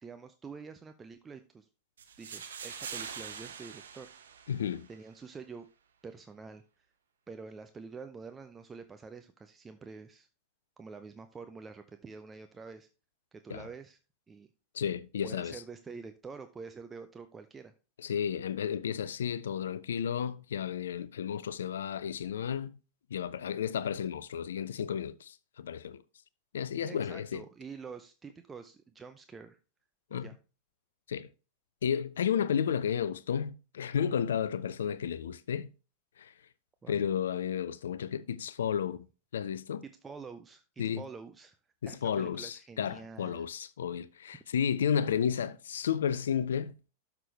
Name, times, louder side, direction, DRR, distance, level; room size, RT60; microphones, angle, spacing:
voice 1, 0.0-1.7 2.2-4.1 4.9-5.7 6.0-6.9 7.3-10.3 10.8-12.9 13.3-14.0 14.3-14.5 15.2-17.7 26.9-29.6 30.1-30.4 36.8-37.0 40.0-40.6 40.9-41.6 41.9-43.5, right 5 dB, 15° right, 0.7 m, -47 dB
sound 1, 2.0-5.0, right 7 dB, 65° right, 1.2 m, -44 dB
voice 2, 4.5-4.9 13.5-13.7 14.7-15.6 18.0-22.8 23.1-26.0 26.5-27.4 30.1-30.3 31.1-31.3 31.8-35.7 36.2-36.3 36.9-39.1 39.3-39.8 40.8-41.0 41.8-46.7, left 8 dB, 65° left, 0.4 m, -32 dB
12.0 x 6.0 x 3.3 m
figure-of-eight pair, 90°, 0 cm